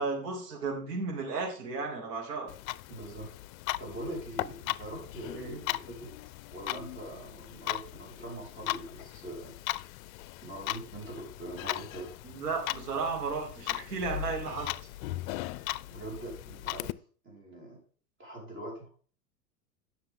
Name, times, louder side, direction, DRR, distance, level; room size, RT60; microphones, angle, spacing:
voice 1, 0.0-2.5 5.3-5.6 12.2-14.8, right 4 dB, 75° right, 1 dB, 3.0 m, -34 dB
Clock, 2.5-16.9, left 17 dB, 60° left, 0.5 m, -38 dB
voice 2, 2.9-3.3 3.8-6.1 6.5-9.5 10.4-12.1 15.9-17.8 18.2-18.9, right 1 dB, 25° right, -1 dB, 4.5 m, -42 dB
10.0 x 6.2 x 3.7 m, 0.41 s
hypercardioid pair, 105°, 48 cm